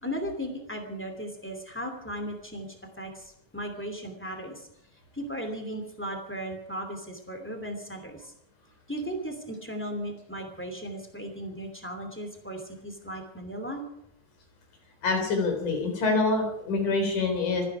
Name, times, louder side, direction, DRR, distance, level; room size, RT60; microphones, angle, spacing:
voice 1, 0.0-4.7 5.1-8.3 8.9-13.8, equal, 5° left, 4 dB, 2.3 m, -36 dB
voice 2, 15.0-17.6, left 3 dB, 85° left, 4 dB, 4.9 m, -26 dB
27.0 x 10.0 x 4.9 m, 0.76 s
omnidirectional pair, 3.5 m